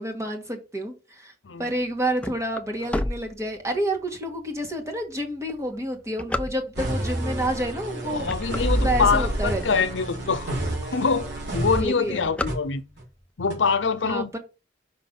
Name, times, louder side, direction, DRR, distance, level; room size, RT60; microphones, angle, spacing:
voice 1, 0.0-1.3 1.6-8.2 8.7-9.8 11.7-12.3 14.0-14.4, right 1 dB, 15° right, 1.7 m, -29 dB
sound 1, 1.7-4.0 4.6-4.7 5.3-7.0 7.7-7.9 8.2-9.7 10.2-10.3 10.5-10.6 10.9-11.3 11.5-13.2, left 1 dB, 5° left, 0.4 m, -32 dB
sound 2, 6.7-12.5 13.0-13.1 13.5-13.6, right 1 dB, 65° right, 3.6 m, -29 dB
voice 2, 8.1-10.6 10.9-12.8 13.4-14.3, left 5 dB, 85° left, 0.7 m, -24 dB
5.9 x 5.6 x 5.3 m
head